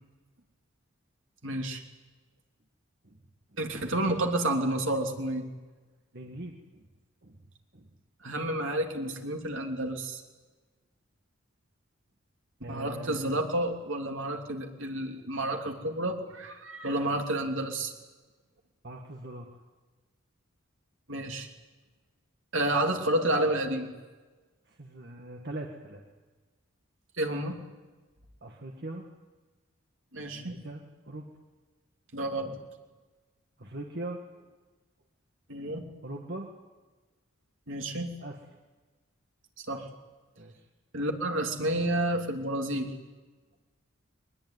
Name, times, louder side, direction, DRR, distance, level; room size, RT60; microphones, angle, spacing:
voice 1, 1.4-1.8 3.6-5.5 8.2-10.2 12.7-17.9 21.1-21.5 22.5-23.9 27.2-27.6 30.1-30.6 32.1-32.5 35.5-35.8 37.7-38.1 39.6-39.9 40.9-42.9, right 1 dB, 70° right, 3 dB, 3.1 m, -30 dB
voice 2, 6.1-6.9 7.2-7.4 7.7-7.9 8.3-8.4 12.6-13.5 18.8-19.6 24.7-26.0 28.4-29.1 30.3-30.8 31.1-31.3 33.6-34.5 36.0-36.5 38.2-38.4 40.4-40.7, right 1 dB, 55° right, 2 dB, 1.8 m, -41 dB
22.0 x 20.5 x 9.5 m, 1.3 s
head